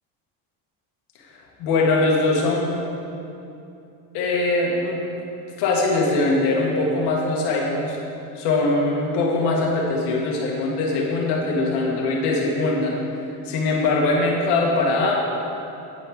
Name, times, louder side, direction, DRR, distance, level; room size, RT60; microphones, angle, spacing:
voice 1, 1.3-2.8 4.1-5.0 5.6-8.0 8.3-12.9 13.4-15.2, left 2 dB, 75° left, -2 dB, 1.5 m, -22 dB
9.2 x 8.9 x 3.7 m, 2.8 s
cardioid pair, 175°, 41 cm